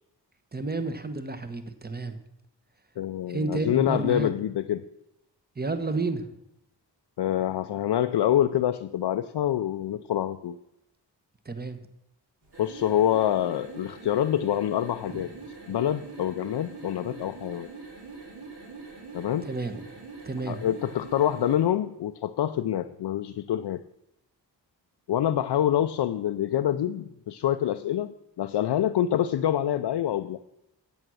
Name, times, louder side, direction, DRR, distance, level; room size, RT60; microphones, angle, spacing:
voice 1, 0.5-2.2 3.3-4.3 5.6-6.2 11.4-11.8 15.1-15.2 19.4-19.7 20.3-20.6, right 3 dB, 20° right, 10 dB, 1.1 m, -31 dB
voice 2, 3.0-4.8 7.2-10.6 12.6-15.3 15.7-17.7 19.1-19.5 20.5-23.8 25.1-30.4, left 11 dB, 70° left, 8 dB, 0.5 m, -26 dB
sound 1, 12.4-21.6, right 4 dB, 65° right, 3.4 m, -44 dB
8.8 x 7.2 x 6.3 m, 0.84 s
cardioid pair, 55°, 42 cm